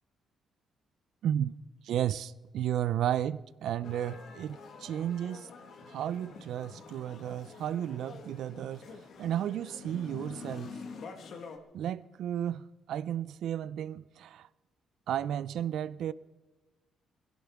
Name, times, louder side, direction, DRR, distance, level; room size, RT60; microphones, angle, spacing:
voice 1, 1.2-1.5 1.8-5.5 5.9-10.7 11.7-14.5 15.1-16.1, right 10 dB, 75° right, 0.4 m, -33 dB
sound 1, 3.8-11.6, left 5 dB, 65° left, 1.5 m, -47 dB
22.0 x 16.0 x 3.6 m
cardioid pair, 90°, 0 cm